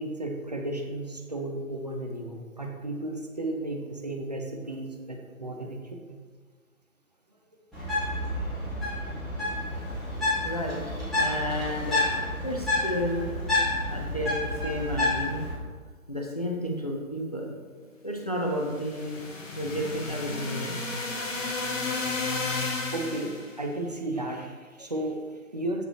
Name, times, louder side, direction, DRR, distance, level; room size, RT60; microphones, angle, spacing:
voice 1, 0.0-6.2 22.4-22.5 22.9-25.8, right 1 dB, 30° right, 1 dB, 0.5 m, -34 dB
Bird, 7.7-15.5, left 2 dB, ahead, 0.9 m, -29 dB
voice 2, 10.4-10.8 11.2-12.0 12.4-13.2 13.9-14.3 14.6-15.4 16.1-17.5 18.0-19.2 19.6-20.8, equal, 30° left, 0 dB, 0.4 m, -31 dB
sound 1, 18.6-23.5, left 3 dB, 60° left, 1.1 m, -32 dB
7.8 x 4.6 x 3.1 m, 1.5 s
figure-of-eight pair, 140°, 44 cm